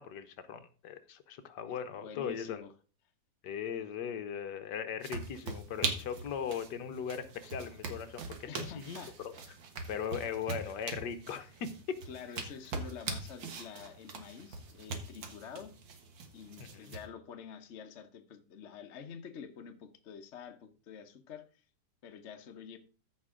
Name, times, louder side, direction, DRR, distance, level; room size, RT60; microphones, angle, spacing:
voice 1, 0.0-2.6 3.4-9.3 9.9-12.0 16.6-17.0, left 7 dB, 65° left, 1.4 m, -39 dB
voice 2, 1.7-2.7 8.5-9.1 12.1-15.7 16.3-21.6 22.0-22.8, left 7 dB, 50° left, 0.9 m, -48 dB
sound 1, 5.0-17.0, right 4 dB, 70° right, 2.0 m, -42 dB
14.0 x 5.3 x 3.7 m
omnidirectional pair, 2.1 m